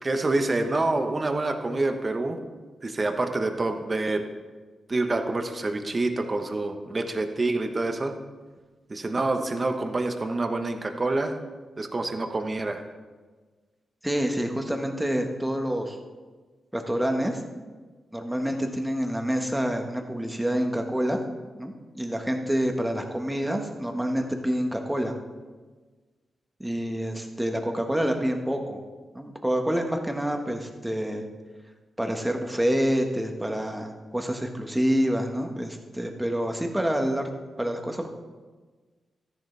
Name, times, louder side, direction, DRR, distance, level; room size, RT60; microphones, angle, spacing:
voice 1, 0.0-2.4 2.8-4.2 4.9-8.2 8.9-11.4 11.8-12.8, right 2 dB, 35° right, 6 dB, 1.2 m, -27 dB
voice 2, 14.0-16.0 16.7-17.4 18.1-21.2 21.6-25.1 26.6-28.8 29.1-31.2 32.0-37.2 37.6-38.1, equal, 10° right, 3 dB, 1.5 m, -27 dB
13.5 x 10.5 x 3.4 m, 1.4 s
cardioid pair, 65°, 0 cm